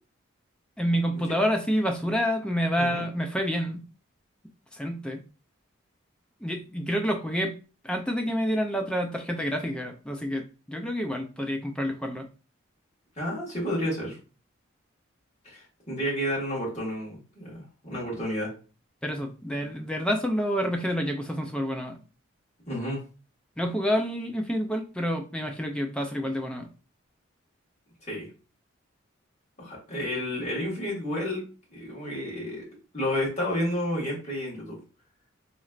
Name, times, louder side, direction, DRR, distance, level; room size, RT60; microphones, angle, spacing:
voice 1, 0.8-3.8 4.7-5.2 6.4-7.5 7.8-12.3 19.0-22.0 23.6-26.7, equal, 5° left, 4 dB, 0.3 m, -28 dB
voice 2, 13.2-14.2 15.4-17.5 17.8-18.5 22.7-23.0 28.0-28.3 29.6-31.4 31.7-32.7 32.9-34.8, equal, 35° left, -5 dB, 1.8 m, -31 dB
4.0 x 3.1 x 2.4 m, 0.35 s
head